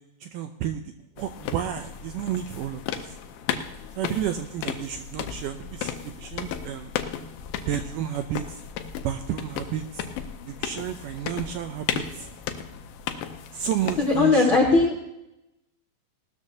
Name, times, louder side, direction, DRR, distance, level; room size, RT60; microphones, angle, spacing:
voice 1, 0.2-0.8 1.2-3.1 4.0-6.9 7.7-8.6 9.0-10.0 10.5-12.3 13.5-14.5, right 10 dB, 85° right, 7 dB, 1.9 m, -31 dB
sound 1, 1.2-14.3, left 9 dB, 80° left, 2.5 m, -35 dB
voice 2, 14.0-15.0, left 3 dB, 60° left, -2 dB, 1.3 m, -19 dB
18.5 x 13.0 x 2.8 m, 0.88 s
omnidirectional pair, 4.3 m